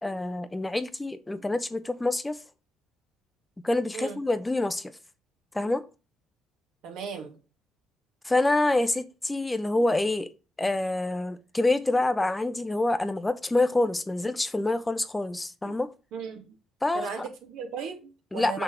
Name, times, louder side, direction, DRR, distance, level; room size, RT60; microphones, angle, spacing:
voice 1, 0.0-2.4 3.6-4.9 5.5-5.8 8.2-10.3 10.6-15.9 16.8-17.1 18.3-18.6, left 2 dB, 15° left, 0.7 m, -26 dB
voice 2, 6.8-7.4 15.6-15.8 16.1-16.6 16.9-18.6, right 6 dB, 75° right, 2.1 m, -36 dB
6.3 x 6.1 x 3.4 m
supercardioid pair, 85°, 0 cm